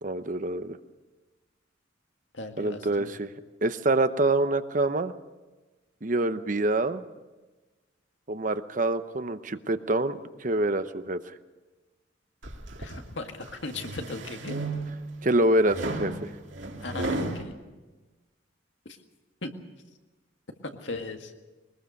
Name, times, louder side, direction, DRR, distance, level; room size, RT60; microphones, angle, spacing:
voice 1, 0.0-0.8 2.6-3.3 3.6-5.1 6.0-7.0 8.3-11.2 15.2-16.3, right 2 dB, 40° right, 11 dB, 0.8 m, -26 dB
voice 2, 2.3-3.2 12.8-14.6 16.8-17.5 19.4-19.5 20.6-21.3, left 2 dB, 75° left, 5 dB, 1.9 m, -37 dB
sound 1, 12.4-13.0 13.5-15.1 15.7-17.4, right 2 dB, 75° right, 2.6 m, -33 dB
21.5 x 20.5 x 6.5 m, 1.2 s
head